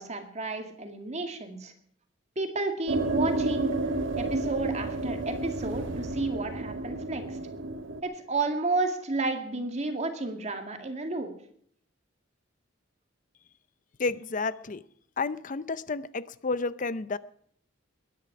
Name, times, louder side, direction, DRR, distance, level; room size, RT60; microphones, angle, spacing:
voice 1, 0.0-1.7 2.4-3.8 4.2-7.4 8.0-11.3, right 3 dB, 35° right, 5 dB, 2.1 m, -31 dB
sound 1, 2.9-8.0, right 2 dB, 70° right, 1.4 m, -31 dB
voice 2, 14.0-14.8 15.2-17.2, left 3 dB, 40° left, 16 dB, 0.6 m, -31 dB
20.5 x 10.5 x 6.0 m, 0.63 s
head